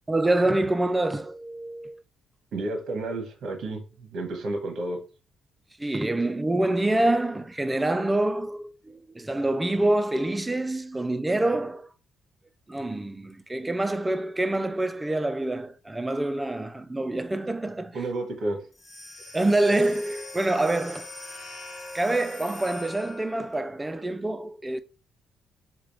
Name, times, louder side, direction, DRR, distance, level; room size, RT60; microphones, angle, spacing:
voice 1, 0.1-2.0 5.8-11.9 12.7-18.0 19.3-21.1 21.9-24.8, right 2 dB, 10° right, 0.3 m, -26 dB
voice 2, 2.5-5.0 17.9-18.7, right 2 dB, 55° right, 1.2 m, -31 dB
sound 1, 18.7-23.5, left 2 dB, 25° left, 1.2 m, -42 dB
3.7 x 2.8 x 4.8 m
cardioid pair, 155°, 0 cm